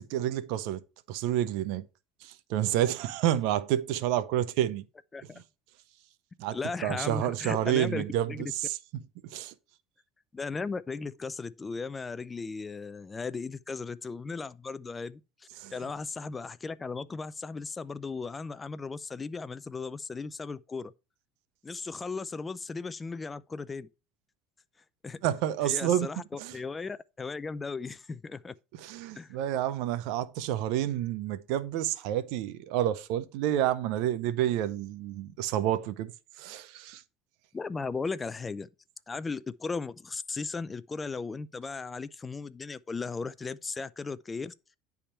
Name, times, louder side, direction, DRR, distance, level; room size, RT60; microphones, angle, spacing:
voice 1, 0.1-0.8 1.1-1.8 2.2-4.9 6.4-8.8 9.3-9.5 15.6-15.7 25.2-26.1 26.4-26.5 28.8-36.1 36.4-37.0, right 12 dB, 75° right, 0.6 m, -29 dB
voice 2, 5.1-5.4 6.5-8.4 10.3-15.2 15.7-20.9 21.6-23.9 25.0-25.2 25.6-28.5 29.2-29.3 37.5-38.7 39.1-44.5, left 4 dB, 20° left, 0.4 m, -36 dB
9.9 x 3.6 x 4.3 m
supercardioid pair, 115°, 0 cm